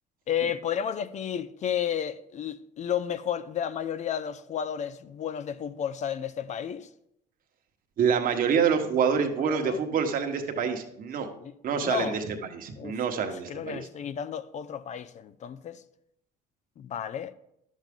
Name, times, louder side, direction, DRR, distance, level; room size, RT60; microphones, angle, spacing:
voice 1, 0.3-6.9 9.4-9.8 11.3-12.2 12.8-13.0 13.5-15.8 16.8-17.3, left 9 dB, 45° left, 0.4 m, -32 dB
voice 2, 8.0-11.3 11.6-13.8, right 6 dB, 55° right, 1.2 m, -27 dB
10.5 x 7.3 x 3.6 m
cardioid pair, 110°, 17 cm